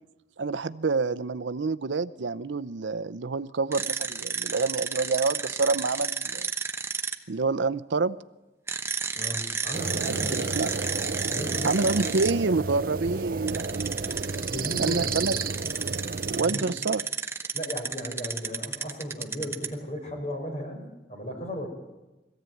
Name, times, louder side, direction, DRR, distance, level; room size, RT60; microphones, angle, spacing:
voice 1, 0.4-6.5 7.3-8.2 10.0-10.7 11.6-13.9 14.8-15.4 16.3-17.0, right 4 dB, 90° right, 13 dB, 0.6 m, -27 dB
sound 1, 3.7-7.1 8.7-12.3 13.5-19.7, right 5 dB, 15° right, 1.0 m, -31 dB
voice 2, 9.1-10.7 11.3-11.8 14.5-15.2 16.3-16.7 17.5-21.7, equal, 40° left, 2 dB, 5.1 m, -35 dB
sound 2, 9.7-16.4, right 4 dB, 50° right, 0.7 m, -32 dB
22.5 x 15.0 x 9.2 m, 1.0 s
head